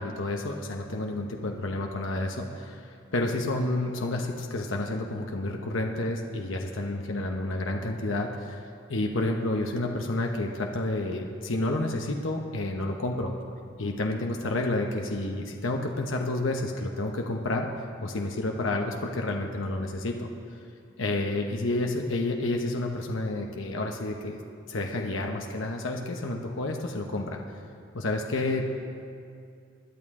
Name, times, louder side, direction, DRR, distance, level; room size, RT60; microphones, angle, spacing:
voice 1, 0.0-8.6 8.9-13.3 13.8-17.7 18.0-20.3 21.0-24.4 24.7-27.4 27.9-28.6, left 2 dB, 65° left, 1 dB, 0.9 m, -30 dB
21.0 x 11.0 x 3.7 m, 2.4 s
head